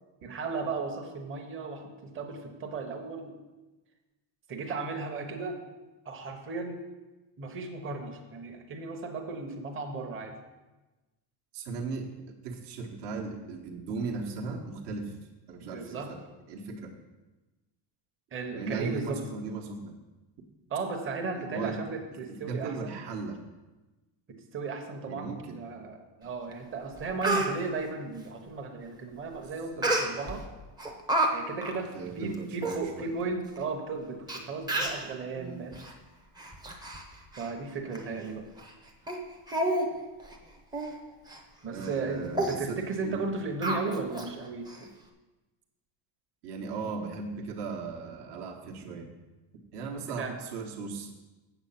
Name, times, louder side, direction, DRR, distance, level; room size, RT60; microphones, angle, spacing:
voice 1, 0.2-3.4 4.5-5.6 6.0-6.8 7.4-10.3 15.6-16.1 18.3-19.2 20.7-23.0 24.3-30.4 31.3-35.8 37.4-38.5 41.6-44.7 50.0-50.3, right 4 dB, 25° right, 3 dB, 1.0 m, -35 dB
voice 2, 11.5-12.1 12.4-15.1 15.5-16.2 16.5-16.9 18.5-19.9 21.3-21.8 22.3-23.4 25.0-25.6 29.3-29.4 29.8-29.9 31.9-33.1 35.3-35.7 41.7-43.2 46.4-49.1 49.5-51.1, right 4 dB, 55° right, 1 dB, 1.2 m, -37 dB
Speech, 26.5-26.6 27.0-27.5 29.8-30.4 30.8-31.3 31.6-31.8 32.3-32.4 32.6-32.8 33.6-33.7 34.3-34.4 34.7-35.1 35.7-35.9 36.4-37.0 37.3-37.5 37.9-38.0 38.6-38.7 39.1-39.2 39.5-39.9 40.2-40.3 40.7-40.9 41.3-41.4 41.8-42.0 42.3-42.6 43.6-44.3 44.7-44.8, right 1 dB, 10° right, 0.6 m, -29 dB
8.0 x 7.5 x 5.7 m, 1.1 s
cardioid pair, 170°, 50 cm